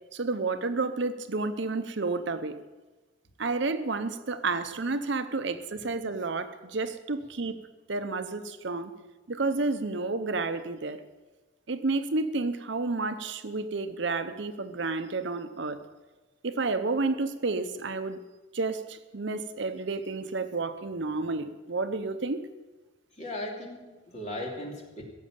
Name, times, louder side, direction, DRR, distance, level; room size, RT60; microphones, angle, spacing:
voice 1, 0.1-2.5 3.4-7.6 7.9-8.9 9.3-11.0 11.7-15.8 16.4-18.2 18.5-22.4, right 3 dB, 60° right, 10 dB, 0.8 m, -30 dB
voice 2, 23.2-25.0, left 1 dB, 35° left, 0 dB, 2.7 m, -37 dB
16.5 x 7.6 x 8.8 m, 1.2 s
head